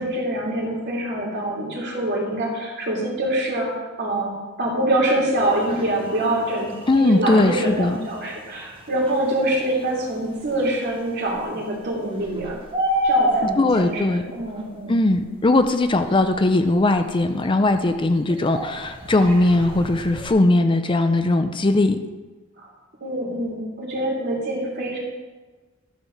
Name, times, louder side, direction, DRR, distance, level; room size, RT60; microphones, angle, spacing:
voice 1, 0.0-3.7 4.0-12.6 13.0-15.0 18.3-18.4 22.6-22.7 23.0-25.0, right 1 dB, 55° right, -3 dB, 3.0 m, -25 dB
sound 1, 5.4-14.7 15.2-17.4 17.8-20.3, equal, 25° right, 1.4 m, -31 dB
voice 2, 6.9-8.0 13.6-14.2 14.9-22.0, left 2 dB, 25° left, 8 dB, 0.5 m, -19 dB
13.0 x 4.5 x 7.0 m, 1.3 s
head